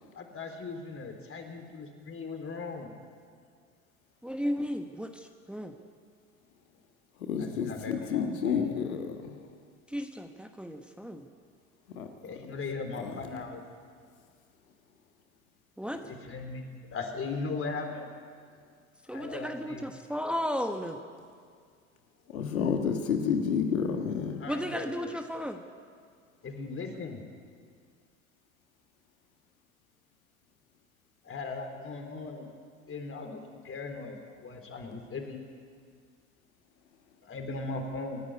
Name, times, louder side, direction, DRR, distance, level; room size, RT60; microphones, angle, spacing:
voice 1, 0.3-2.9 7.4-8.8 12.2-13.6 15.8-18.1 19.1-19.9 24.4-25.0 26.4-27.2 31.2-32.5 32.9-35.4 37.2-38.2, left 3 dB, 30° left, 5 dB, 3.9 m, -38 dB
voice 2, 4.2-5.7 9.9-11.3 15.8-16.0 19.1-21.0 24.5-25.6, equal, 5° right, 5 dB, 1.3 m, -34 dB
voice 3, 7.3-9.0 12.0-12.1 22.3-24.4, left 6 dB, 85° left, 5 dB, 1.7 m, -29 dB
27.0 x 11.0 x 9.7 m, 2.1 s
hypercardioid pair, 75°, 40 cm